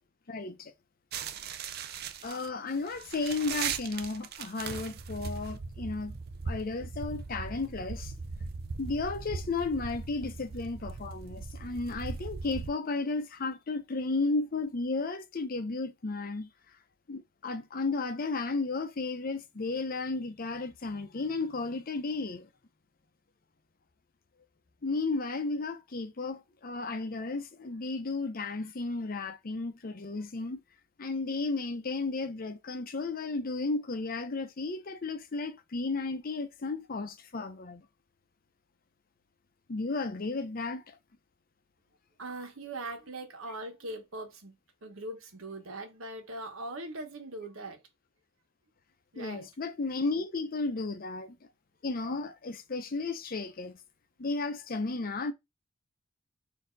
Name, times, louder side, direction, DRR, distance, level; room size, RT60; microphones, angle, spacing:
voice 1, 0.3-0.7 2.2-6.2 6.5-8.1 8.8-16.5 17.1-22.5 24.8-30.6 31.0-37.8 39.7-41.0 49.2-51.3 51.8-53.8 54.2-55.3, left 3 dB, 45° left, 0.6 m, -33 dB
sound 1, 1.1-12.7, right 5 dB, 50° right, 0.5 m, -39 dB
voice 2, 42.2-44.5 44.8-47.8 49.1-49.5, right 2 dB, 85° right, 1.2 m, -41 dB
4.3 x 2.8 x 3.9 m
head